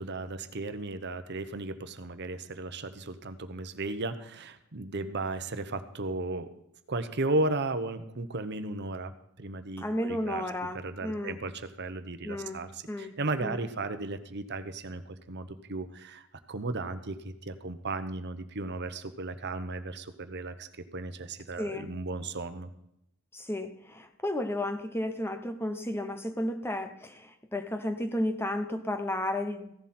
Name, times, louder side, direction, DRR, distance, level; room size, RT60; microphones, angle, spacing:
voice 1, 0.0-6.5 6.9-9.1 9.4-10.4 10.7-22.7, right 2 dB, 50° right, 10 dB, 1.0 m, -35 dB
voice 2, 9.8-11.4 12.2-12.6 12.9-13.2 13.4-13.6 21.6-21.9 23.3-29.7, left 1 dB, 10° left, 8 dB, 0.8 m, -33 dB
16.0 x 11.5 x 4.4 m, 0.79 s
head